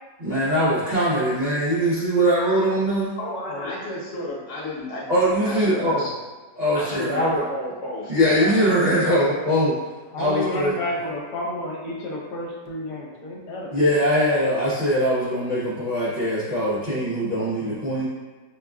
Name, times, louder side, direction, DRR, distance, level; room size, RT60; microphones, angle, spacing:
voice 1, 0.2-3.1 5.1-6.0 6.6-7.4 8.1-9.8 10.2-10.7 13.7-18.1, equal, 80° right, -11 dB, 0.3 m, -21 dB
voice 2, 3.2-6.1 6.7-9.2, left 1 dB, 50° left, -6 dB, 1.2 m, -32 dB
voice 3, 10.1-13.8, left 1 dB, 70° left, -2 dB, 1.3 m, -31 dB
5.4 x 2.4 x 2.3 m, 1.3 s
omnidirectional pair, 1.9 m